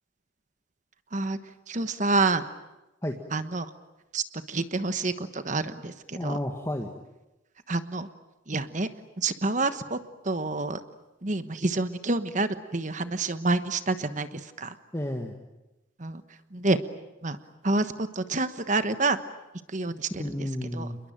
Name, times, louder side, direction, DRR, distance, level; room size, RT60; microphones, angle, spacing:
voice 1, 1.7-2.4 3.3-3.7 4.1-6.4 7.7-8.1 8.5-8.9 9.2-10.0 10.2-10.8 11.2-14.7 16.0-16.2 16.5-16.8 17.2-17.4 17.6-19.2 19.7-20.2 20.7-20.9, right 3 dB, 40° right, 11 dB, 1.2 m, -28 dB
voice 2, 6.1-6.9 14.9-15.4 20.2-21.0, left 1 dB, 15° left, 3 dB, 1.7 m, -31 dB
28.5 x 22.0 x 9.0 m, 0.99 s
head